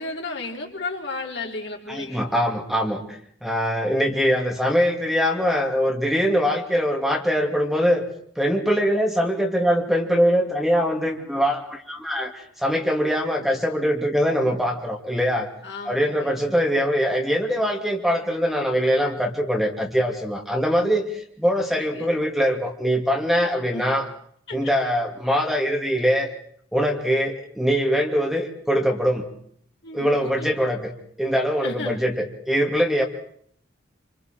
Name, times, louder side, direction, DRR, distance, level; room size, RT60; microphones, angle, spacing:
voice 1, 0.0-2.3 15.6-16.4 21.7-22.1 23.7-23.8 24.5-24.7 29.8-30.5 31.6-32.0, left 3 dB, 65° left, 0 dB, 4.0 m, -34 dB
voice 2, 1.9-8.0 8.4-15.5 15.8-24.0 24.5-26.3 26.7-29.2 29.9-30.8 31.2-32.1 32.5-33.0, equal, ahead, 0 dB, 2.5 m, -22 dB
27.0 x 26.5 x 4.5 m, 0.64 s
head